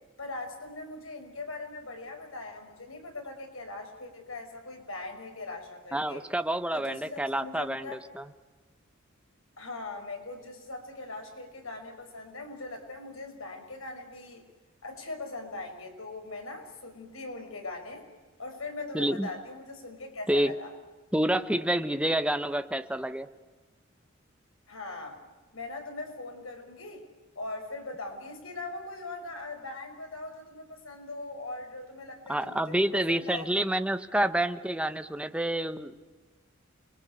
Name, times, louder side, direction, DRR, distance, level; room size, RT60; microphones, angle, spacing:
voice 1, 0.2-6.2 6.7-8.0 9.6-14.4 14.8-18.1 18.4-20.7 24.7-25.2 25.5-27.1 27.4-33.6, left 2 dB, 90° left, 4 dB, 5.6 m, -40 dB
voice 2, 5.9-8.3 18.9-19.3 20.3-20.5 21.1-23.3 32.3-36.0, right 1 dB, 5° right, 9 dB, 1.1 m, -28 dB
29.0 x 23.0 x 8.4 m, 1.3 s
head